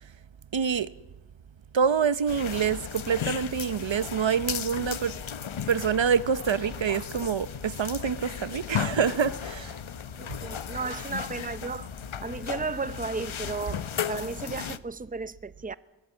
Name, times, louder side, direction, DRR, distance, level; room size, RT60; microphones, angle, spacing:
voice 1, 0.5-0.9 1.7-5.1 5.7-9.7, right 7 dB, 65° right, 0.8 m, -26 dB
sound 1, 2.3-14.8, left 8 dB, 75° left, 0.8 m, -35 dB
voice 2, 10.2-11.9 12.2-15.8, right 4 dB, 15° right, 0.7 m, -34 dB
22.0 x 15.0 x 8.9 m
wide cardioid pair, 50°, 48 cm